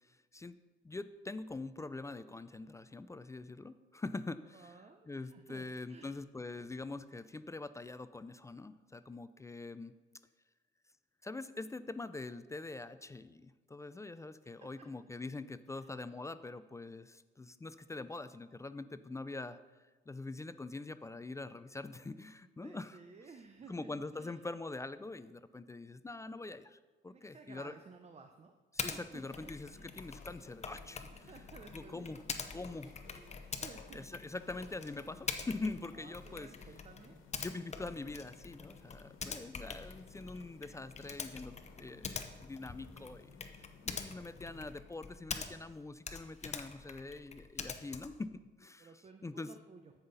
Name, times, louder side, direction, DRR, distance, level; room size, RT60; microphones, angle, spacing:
voice 1, 0.1-0.6 0.8-4.7 5.1-9.9 11.2-19.6 20.1-23.0 23.7-26.8 27.0-27.7 28.7-31.3 31.7-32.2 32.5-33.0 33.9-36.5 37.4-49.5, left 3 dB, 15° left, 13 dB, 0.3 m, -44 dB
voice 2, 4.5-6.1 14.5-14.9 15.7-16.0 22.6-24.4 27.1-30.1 31.2-34.1 35.9-37.2 48.8-49.9, right 4 dB, 35° right, 6 dB, 0.6 m, -56 dB
Typing, 28.8-29.0 29.3-45.8 46.0-48.2, left 5 dB, 35° left, 0.8 m, -45 dB
sound 1, 29.1-44.7, left 5 dB, 90° left, 1.3 m, -59 dB
13.5 x 5.7 x 3.9 m, 1.2 s
cardioid pair, 90°, 20 cm